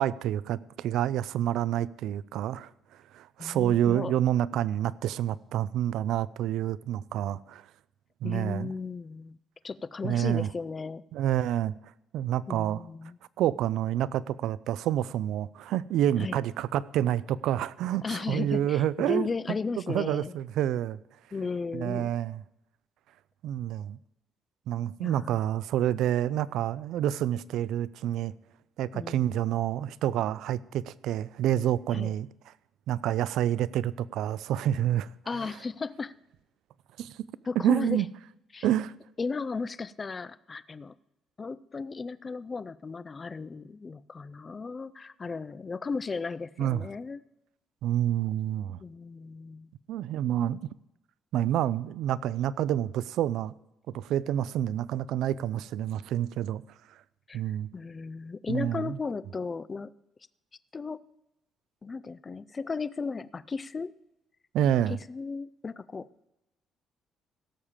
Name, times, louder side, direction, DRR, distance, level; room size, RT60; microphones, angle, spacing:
voice 1, 0.0-2.7 3.1-7.6 8.2-8.7 10.0-10.5 11.1-11.7 12.1-12.8 13.4-19.3 19.9-21.0 21.7-22.4 23.4-24.0 24.7-28.3 28.8-32.3 32.9-35.1 35.4-35.5 37.0-37.1 37.6-38.1 38.6-38.9 46.6-46.9 47.8-48.8 49.9-50.6 51.3-53.5 53.9-56.6 57.3-57.7 58.5-59.0 64.5-65.0, right 11 dB, 70° right, 0.4 m, -28 dB
voice 2, 3.4-4.1 8.2-9.4 9.6-11.0 12.5-13.2 16.2-16.4 18.0-20.3 21.3-22.1 25.0-25.4 28.9-29.3 31.9-32.1 35.3-36.1 37.5-38.0 38.5-38.7 39.2-40.9 41.4-47.2 48.8-49.7 57.3-57.4 57.7-59.9 60.7-61.0 61.8-63.9 64.9-66.1, left 4 dB, 20° left, 0.3 m, -35 dB
16.5 x 7.3 x 5.0 m
cardioid pair, 180°, 0 cm